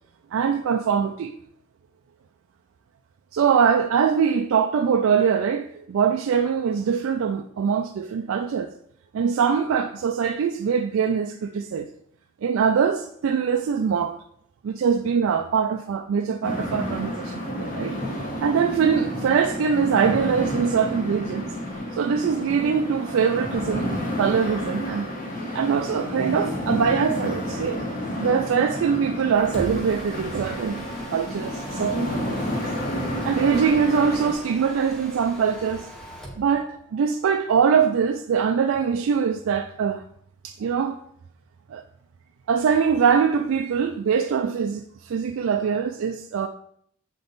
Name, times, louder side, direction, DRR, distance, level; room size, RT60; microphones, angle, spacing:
voice 1, 0.3-1.3 3.3-8.8 9.1-11.9 12.4-14.2 14.6-18.0 18.4-21.5 21.9-25.1 25.5-27.8 28.2-32.5 33.2-35.9 36.4-40.0 40.4-41.0 41.7-41.8 42.5-46.5, right 6 dB, 70° right, 0.3 m, -23 dB
sound 1, 16.4-34.3, equal, 40° left, 1.1 m, -30 dB
Mechanisms, 29.2-36.5, equal, ahead, 0.9 m, -41 dB
6.7 x 3.6 x 3.9 m
head